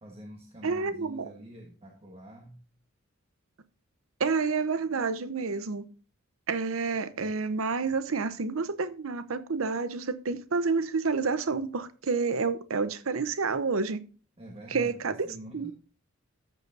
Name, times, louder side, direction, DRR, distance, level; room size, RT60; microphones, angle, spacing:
voice 1, 0.0-2.6 14.4-15.7, equal, 30° right, 1.3 m, -46 dB
voice 2, 0.6-1.2 4.2-5.8 6.5-14.0 14.7-15.1 15.5-15.7, right 4 dB, 80° right, 0.8 m, -29 dB
14.0 x 6.5 x 2.6 m
head